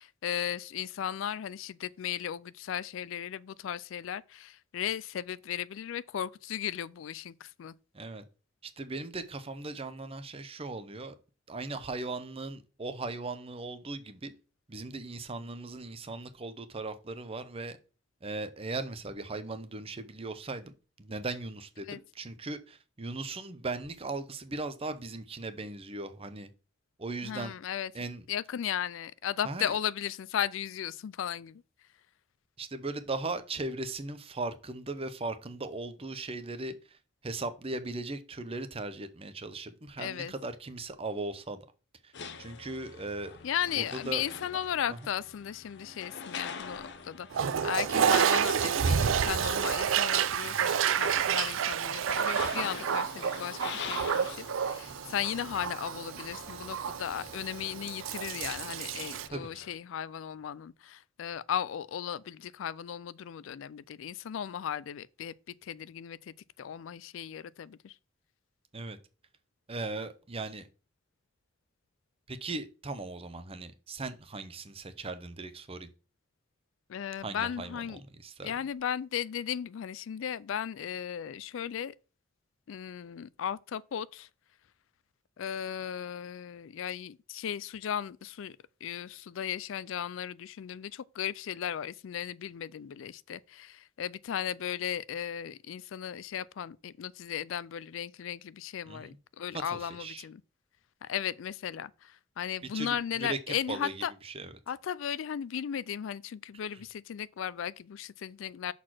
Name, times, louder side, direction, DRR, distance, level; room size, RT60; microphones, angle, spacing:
voice 1, 0.0-7.7 21.9-22.0 27.2-27.9 28.3-31.6 40.0-40.3 43.4-68.0 76.9-78.0 78.4-81.9 82.7-84.3 85.4-100.4 101.0-104.1 104.7-108.7, left 9 dB, 75° left, 0.4 m, -36 dB
voice 2, 8.6-11.2 11.5-14.3 14.7-17.8 18.2-20.7 21.0-26.5 27.0-27.5 27.9-28.2 29.4-29.7 32.6-37.0 37.2-41.7 42.0-42.1 42.4-43.3 43.8-44.2 59.3-59.5 68.7-69.0 69.7-70.7 72.3-75.9 77.2-78.5 98.9-99.2 99.7-100.3 102.7-104.5, right 3 dB, 30° right, 0.7 m, -38 dB
sound 1, 42.1-59.7, left 6 dB, 60° left, 0.8 m, -45 dB
Toilet flush, 47.3-59.3, right 7 dB, 80° right, 0.4 m, -29 dB
6.4 x 4.1 x 6.0 m
head